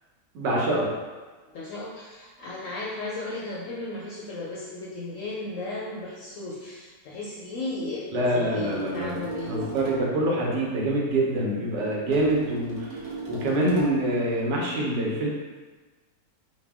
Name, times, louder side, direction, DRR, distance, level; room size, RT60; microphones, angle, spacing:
voice 1, 0.3-0.9 8.1-9.2 9.5-15.3, right 1 dB, 85° right, -3 dB, 1.4 m, -25 dB
voice 2, 1.5-9.8, left 2 dB, 70° left, -5 dB, 0.7 m, -35 dB
sound 1, 8.2-10.2 12.1-14.2, right 3 dB, 65° right, 1.4 m, -37 dB
4.3 x 2.1 x 3.4 m, 1.3 s
omnidirectional pair, 1.8 m